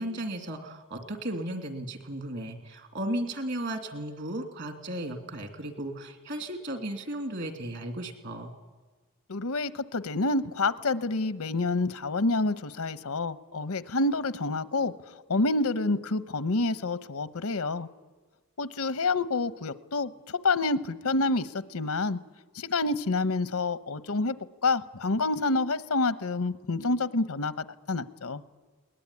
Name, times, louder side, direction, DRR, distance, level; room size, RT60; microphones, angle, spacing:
voice 1, 0.0-8.5, right 1 dB, 55° right, 6 dB, 2.8 m, -35 dB
voice 2, 9.3-17.9 18.6-22.2 22.5-24.4 24.6-28.4, left 3 dB, 80° left, 13 dB, 0.9 m, -28 dB
21.5 x 19.5 x 9.8 m, 1.3 s
head